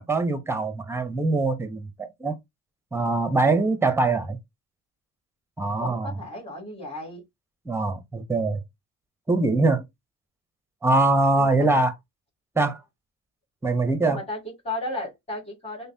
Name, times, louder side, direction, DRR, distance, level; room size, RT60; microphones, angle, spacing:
voice 1, 0.0-2.3 2.9-4.4 5.6-6.1 7.7-8.6 9.3-9.8 10.8-11.9 12.6-12.8 13.6-14.2, right 2 dB, 5° right, 0.7 m, -23 dB
voice 2, 5.8-7.2 11.3-11.7 14.0-15.9, left 1 dB, 15° left, 2.5 m, -34 dB
5.1 x 2.2 x 2.7 m
supercardioid pair, 75°, 37 cm